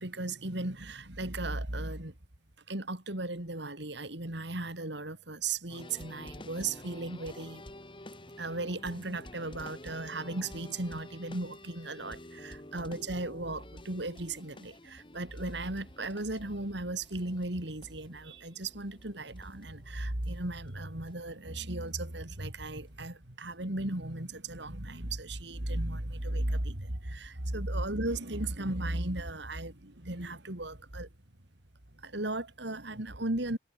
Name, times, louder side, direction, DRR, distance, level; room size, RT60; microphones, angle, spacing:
voice 1, 0.0-2.1 2.7-7.6 8.4-31.1 31.9-33.6, right 2 dB, 60° right, 3.1 m, -36 dB
sound 1, 5.7-20.4 20.7-20.8 21.1-21.2 21.9-22.0 22.3-22.9 23.5-23.6, left 1 dB, 25° left, 2.7 m, -50 dB
head